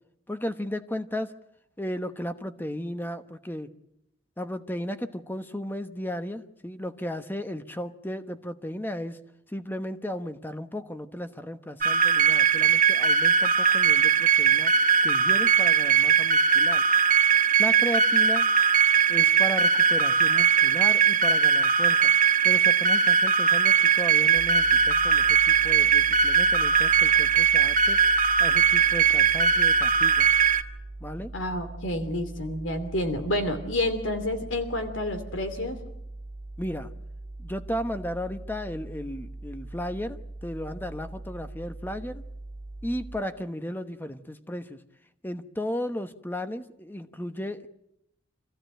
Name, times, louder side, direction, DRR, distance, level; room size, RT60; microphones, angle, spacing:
voice 1, 0.3-1.3 1.8-3.7 4.4-9.2 9.5-14.7 15.0-16.8 17.6-18.5 19.1-22.1 22.4-28.0 28.4-30.3 31.0-31.3 36.6-36.9 37.4-42.2 42.8-44.8 45.2-47.7, equal, 10° left, 9 dB, 1.1 m, -35 dB
sound 1, 11.8-30.6, right 6 dB, 45° right, 1.3 m, -20 dB
sound 2, 24.3-43.2, right 2 dB, 25° right, 1.9 m, -41 dB
voice 2, 31.3-35.8, left 1 dB, 75° left, 7 dB, 2.8 m, -29 dB
26.5 x 15.5 x 9.1 m, 0.81 s
head